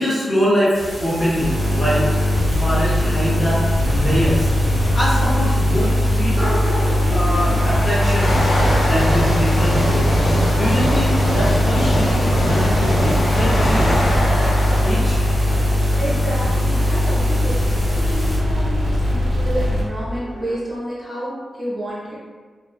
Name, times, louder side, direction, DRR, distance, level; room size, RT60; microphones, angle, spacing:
voice 1, 0.0-2.1 2.4-4.5 4.9-6.5 7.1-8.4 8.7-10.1 10.5-14.0 14.8-15.2, equal, 30° left, -8 dB, 0.7 m, -23 dB
sound 1, 0.7-18.4, equal, 55° left, 1.1 m, -31 dB
sound 2, 1.4-20.2, left 1 dB, 80° right, 0.9 m, -19 dB
sound 3, 5.7-17.1 17.7-17.9 18.7-18.8 19.0-20.6, equal, 70° left, 0.6 m, -24 dB
voice 2, 16.0-22.2, right 1 dB, 5° right, -9 dB, 0.6 m, -29 dB
2.5 x 2.2 x 2.2 m, 1.5 s
wide cardioid pair, 170°, 0 cm